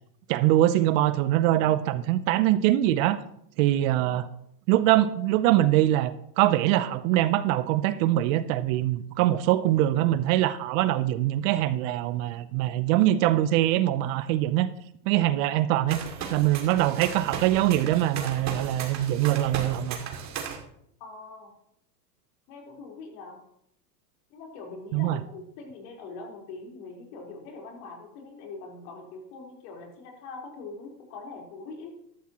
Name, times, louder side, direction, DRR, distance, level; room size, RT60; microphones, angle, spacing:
voice 1, 0.3-3.2 3.6-4.3 4.7-14.7 15.0-16.0 16.3-20.0 24.9-25.2, right 14 dB, 50° right, 14 dB, 0.8 m, -23 dB
sound 1, 15.9-20.6, right 7 dB, 35° right, 2.5 m, -36 dB
voice 2, 21.0-21.5 22.5-23.4 24.3-31.9, left 3 dB, 60° left, 0 dB, 4.4 m, -42 dB
14.0 x 12.5 x 3.0 m, 0.73 s
supercardioid pair, 125°, 50 cm